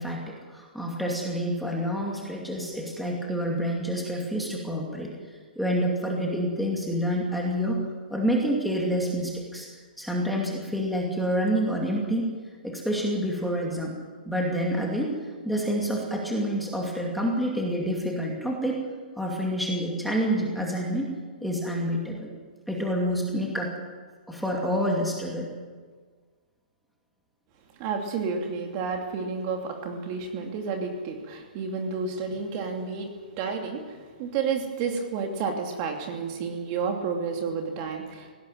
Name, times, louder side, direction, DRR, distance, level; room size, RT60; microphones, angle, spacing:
voice 1, 0.0-5.1 5.6-7.8 8.1-9.7 10.0-12.3 12.6-13.9 14.3-15.1 15.4-18.8 19.2-21.1 21.4-22.3 22.7-23.7 24.3-25.5, equal, ahead, -2 dB, 2.5 m, -28 dB
voice 2, 27.8-38.3, right 5 dB, 30° right, 3 dB, 2.8 m, -31 dB
19.0 x 17.5 x 9.2 m, 1.5 s
hypercardioid pair, 165°, 5 cm